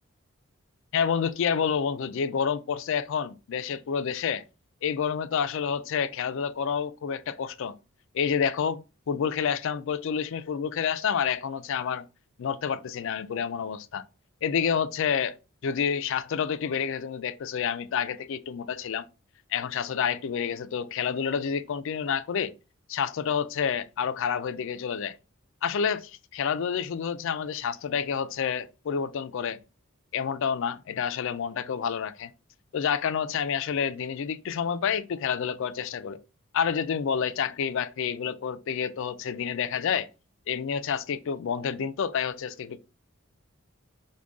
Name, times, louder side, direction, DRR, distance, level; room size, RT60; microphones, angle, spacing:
voice 1, 0.9-4.4 4.8-7.8 8.1-12.0 12.4-14.0 14.4-15.4 15.6-19.1 19.5-22.5 22.9-25.1 25.6-29.6 30.1-32.3 32.7-36.2 36.5-40.1 40.5-42.8, left 7 dB, 60° left, 0.4 m, -29 dB
4.9 x 2.2 x 3.5 m
head